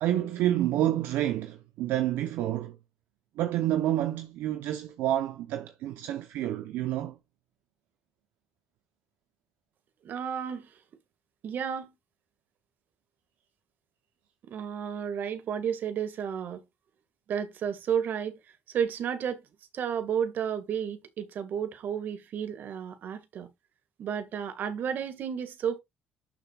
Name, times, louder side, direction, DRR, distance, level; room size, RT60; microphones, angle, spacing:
voice 1, 0.0-2.8 3.4-7.2, right 12 dB, 75° right, 0.8 m, -28 dB
voice 2, 10.0-10.7 11.4-11.9 14.5-16.6 17.3-18.4 18.7-19.4 19.7-23.5 24.0-25.8, right 8 dB, 60° right, 1.9 m, -32 dB
11.0 x 6.8 x 2.4 m
supercardioid pair, 85°, 4 cm